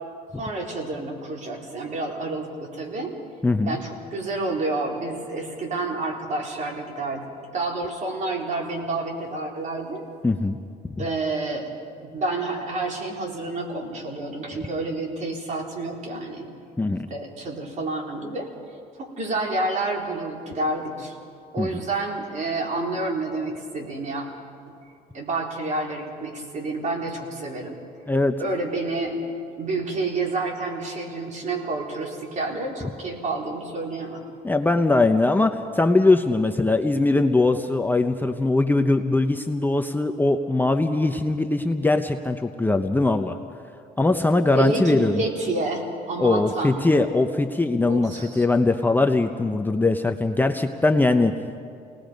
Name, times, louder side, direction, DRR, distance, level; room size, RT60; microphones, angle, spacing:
voice 1, 0.4-3.2 3.6-10.1 11.0-11.7 12.1-16.5 17.1-18.5 19.0-21.2 21.5-24.3 25.1-27.8 28.4-29.2 29.6-34.2 44.5-46.9 47.8-48.4, right 2 dB, 45° right, 0 dB, 4.2 m, -29 dB
voice 2, 3.4-3.8 10.2-10.6 11.0-11.1 16.8-17.1 21.6-21.8 28.1-28.4 34.4-43.4 44.0-45.2 46.2-51.3, left 2 dB, 10° left, 6 dB, 0.8 m, -21 dB
30.0 x 19.0 x 5.2 m, 2.4 s
cardioid pair, 110°, 17 cm